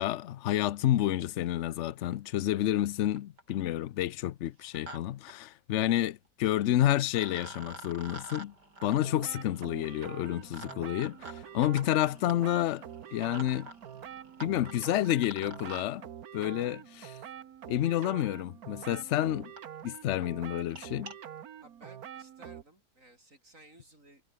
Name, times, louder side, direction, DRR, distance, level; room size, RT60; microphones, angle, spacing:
voice 1, 0.0-8.5 8.8-12.8 13.1-13.7 14.4-16.1 16.3-17.2 17.7-19.5 19.8-21.1, left 13 dB, 65° left, 0.7 m, -29 dB
sound 1, 2.8-2.9 3.2-3.6 4.5-5.0 5.3-5.4 6.6-6.7 7.1-15.9 17.2-17.3 18.1-18.2 18.8-18.9 19.2-19.3 19.6-19.7 19.9-20.1 20.6-21.2, right 2 dB, 85° right, 7.8 m, -48 dB
sound 2, 9.0-22.6, right 9 dB, 65° right, 1.5 m, -46 dB
voice 2, 21.6-24.2, right 1 dB, 50° right, 8.0 m, -57 dB
omnidirectional pair, 1.8 m